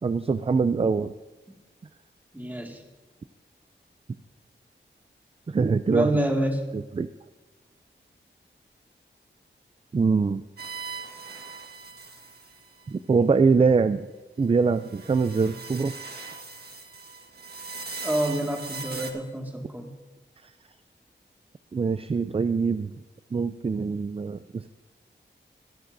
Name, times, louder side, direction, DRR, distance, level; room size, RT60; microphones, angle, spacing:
voice 1, 0.0-1.1 5.5-6.1 6.7-7.1 9.9-10.4 12.9-14.1 14.4-16.0 21.7-22.9 23.3-24.7, right 4 dB, 30° right, 12 dB, 0.4 m, -23 dB
voice 2, 2.3-2.8 5.9-6.7 18.0-19.9, right 1 dB, 10° right, 1 dB, 2.1 m, -27 dB
sound 1, 10.6-12.8 14.7-19.1, right 3 dB, 55° right, 1.4 m, -39 dB
23.0 x 10.5 x 2.7 m, 1.2 s
wide cardioid pair, 75°, 20 cm